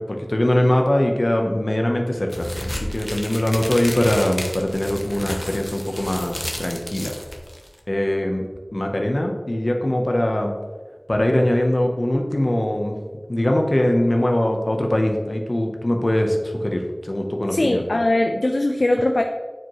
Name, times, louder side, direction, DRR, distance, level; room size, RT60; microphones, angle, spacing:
voice 1, 0.0-7.1 7.9-8.4 8.7-10.5 11.1-13.0 13.3-17.8, left 1 dB, 55° left, 2 dB, 0.8 m, -22 dB
sound 1, 2.3-7.8, left 1 dB, 25° left, 0.9 m, -32 dB
voice 2, 17.5-19.2, left 1 dB, 80° left, 4 dB, 0.4 m, -20 dB
8.8 x 4.6 x 3.0 m, 1.3 s
wide cardioid pair, 45°, 0 cm